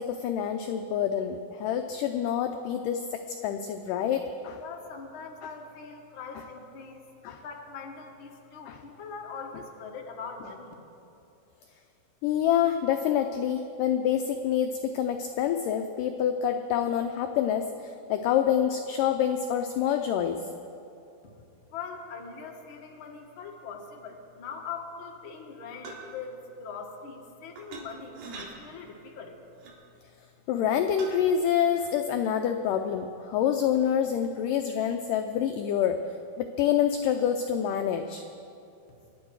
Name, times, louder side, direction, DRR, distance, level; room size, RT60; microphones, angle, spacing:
voice 1, 0.0-4.6 7.2-7.4 8.7-8.8 12.2-20.4 30.5-36.0 36.4-38.2, left 9 dB, 80° left, 6 dB, 1.9 m, -27 dB
voice 2, 4.6-10.7 21.3-21.4 21.7-29.4, left 5 dB, 50° left, 1 dB, 1.6 m, -42 dB
sound 1, 25.8-26.1 27.6-27.8 28.1-28.5 29.6-29.8 31.0-31.1, right 4 dB, 70° right, 3.8 m, -41 dB
25.0 x 11.5 x 4.7 m, 2.7 s
omnidirectional pair, 4.4 m